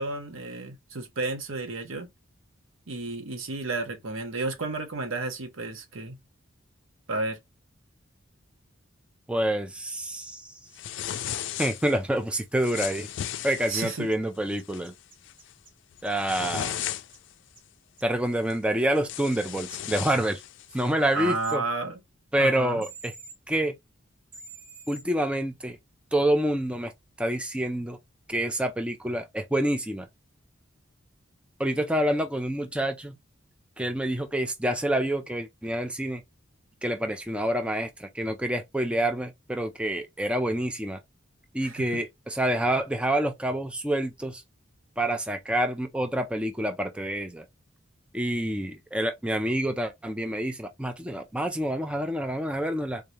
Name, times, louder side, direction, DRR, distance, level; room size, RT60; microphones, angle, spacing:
voice 1, 0.0-2.1 2.9-6.2 7.1-7.4 13.7-14.1 21.1-22.0 22.4-22.9 41.6-42.0, right 3 dB, 85° right, 1.0 m, -32 dB
voice 2, 9.3-10.6 11.6-13.1 13.4-14.9 16.0-16.8 18.0-20.4 20.7-21.6 22.3-23.1 23.5-23.7 24.9-25.8 26.1-26.9 27.2-28.0 28.3-30.1 31.6-33.1 33.8-36.2 36.8-41.0 41.5-44.4 45.0-47.5 48.1-53.0, right 1 dB, 5° right, 0.4 m, -27 dB
sound 1, 10.7-12.0 12.6-14.0 14.5-14.8 15.2-15.5 15.9-17.3 18.5-18.6 19.0-20.9, left 10 dB, 65° left, 0.4 m, -35 dB
sound 2, 14.1-14.2 14.6-15.7 16.0-16.6 17.1-17.2 17.5-17.6 18.0-18.1 21.4-21.6 22.8-23.3 24.3-25.0, right 3 dB, 40° right, 1.0 m, -46 dB
3.8 x 2.7 x 3.2 m
head